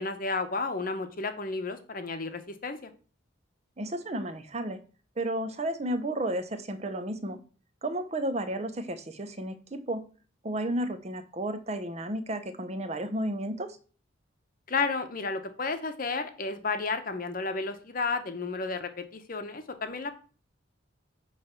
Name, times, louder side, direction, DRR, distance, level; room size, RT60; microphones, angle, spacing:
voice 1, 0.0-2.9 14.7-20.1, left 4 dB, 45° left, 8 dB, 0.9 m, -32 dB
voice 2, 3.8-4.8 5.2-7.4 7.8-10.0 10.4-13.8, right 1 dB, 35° right, 10 dB, 0.7 m, -32 dB
8.8 x 3.3 x 5.8 m, 0.39 s
head